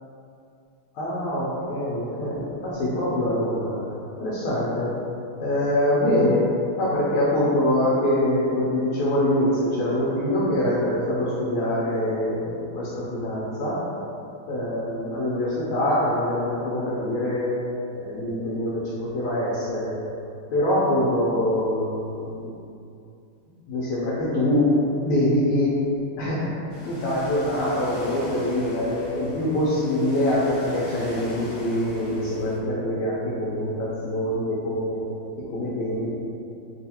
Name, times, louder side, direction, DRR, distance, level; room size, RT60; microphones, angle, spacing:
voice 1, 0.9-3.8 4.2-4.9 5.4-6.5 6.8-13.8 14.5-17.5 17.9-20.0 20.5-22.5 23.7-25.8 26.2-35.0 35.5-36.1, left 1 dB, 85° left, -8 dB, 1.5 m, -24 dB
Ocean, 26.7-32.6, left 1 dB, 60° left, 1.2 m, -40 dB
3.6 x 2.4 x 2.8 m, 2.6 s
omnidirectional pair, 2.3 m